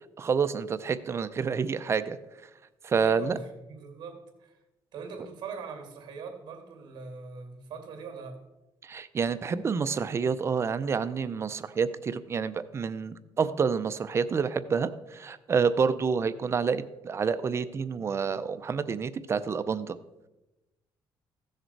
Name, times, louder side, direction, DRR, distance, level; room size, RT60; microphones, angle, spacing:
voice 1, 0.2-2.2 2.8-3.4 8.8-20.0, right 5 dB, 30° right, 0.5 m, -28 dB
voice 2, 3.0-4.6 4.9-8.4, right 5 dB, 55° right, 2.5 m, -42 dB
15.5 x 6.6 x 4.6 m
cardioid pair, 140°, 9 cm